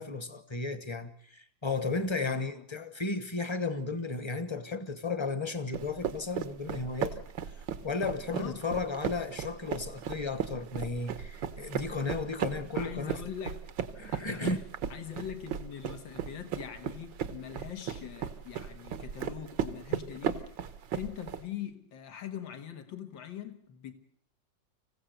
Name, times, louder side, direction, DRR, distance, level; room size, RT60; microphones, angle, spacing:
voice 1, 0.0-7.2 7.8-13.2 14.0-14.6, left 3 dB, 20° left, 1.0 m, -34 dB
voice 2, 2.2-2.7 8.3-8.7 12.7-13.7 14.1-14.6 14.9-23.9, left 9 dB, 80° left, 2.3 m, -42 dB
sound 1, 5.7-21.4, right 9 dB, 80° right, 1.8 m, -36 dB
25.5 x 15.5 x 8.0 m
omnidirectional pair, 2.0 m